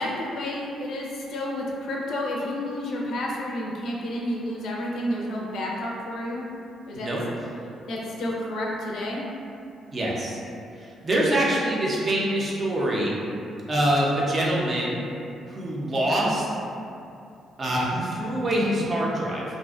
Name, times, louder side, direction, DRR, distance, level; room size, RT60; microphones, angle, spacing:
voice 1, 0.0-6.5 6.9-7.1 7.9-9.2, left 1 dB, 70° left, -3 dB, 0.4 m, -30 dB
voice 2, 9.9-10.4 10.8-13.1 13.7-15.0 15.5-16.5 17.6-19.4, right 1 dB, 35° right, -5 dB, 0.5 m, -25 dB
2.5 x 2.1 x 2.4 m, 2.5 s
cardioid pair, 90°, 0 cm